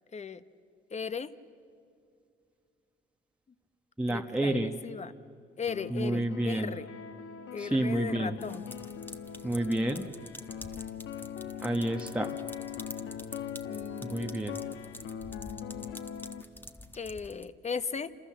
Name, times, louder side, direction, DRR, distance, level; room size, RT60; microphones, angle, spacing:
voice 1, 0.1-0.4 0.9-1.3 4.1-5.1 5.6-6.9 7.5-8.7 13.6-14.7 17.0-18.1, left 5 dB, 35° left, 13 dB, 1.2 m, -37 dB
voice 2, 4.0-4.7 5.9-6.7 7.6-8.4 9.4-10.1 11.6-12.4 14.0-14.6, right 1 dB, 5° right, 2 dB, 1.2 m, -29 dB
sound 1, 5.7-16.4, left 8 dB, 85° left, 1.2 m, -41 dB
sound 2, 8.4-17.5, left 1 dB, 10° left, 1.4 m, -48 dB
28.5 x 27.0 x 7.5 m, 2.4 s
cardioid pair, 90°, 20 cm